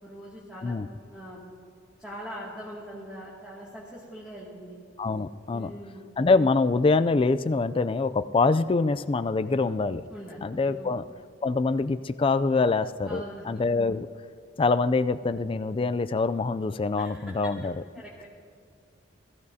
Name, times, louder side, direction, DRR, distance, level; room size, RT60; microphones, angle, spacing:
voice 1, 0.0-1.4 2.0-4.8 5.5-6.1 10.1-11.0 13.0-13.4 17.0-17.5 17.9-18.3, equal, 5° right, -7 dB, 2.2 m, -42 dB
voice 2, 5.0-5.7 6.2-10.0 10.4-11.0 11.4-14.1 14.6-17.7, left 3 dB, 30° left, 12 dB, 0.3 m, -25 dB
21.0 x 14.0 x 2.8 m, 2.4 s
head